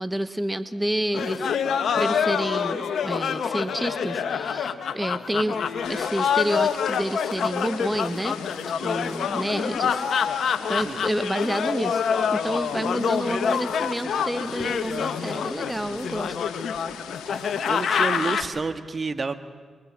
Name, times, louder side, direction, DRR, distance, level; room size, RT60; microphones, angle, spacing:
voice 1, 0.0-1.5 1.9-5.6 5.9-8.4 8.8-16.4, right 1 dB, 10° right, 11 dB, 1.4 m, -29 dB
sound 1, 1.1-18.4, left 7 dB, 70° left, 1.8 m, -26 dB
sound 2, 5.8-18.5, left 9 dB, 85° left, 2.1 m, -42 dB
voice 2, 17.3-19.4, right 4 dB, 45° right, 10 dB, 1.8 m, -30 dB
29.5 x 23.5 x 7.7 m, 1.5 s
supercardioid pair, 45°, 0 cm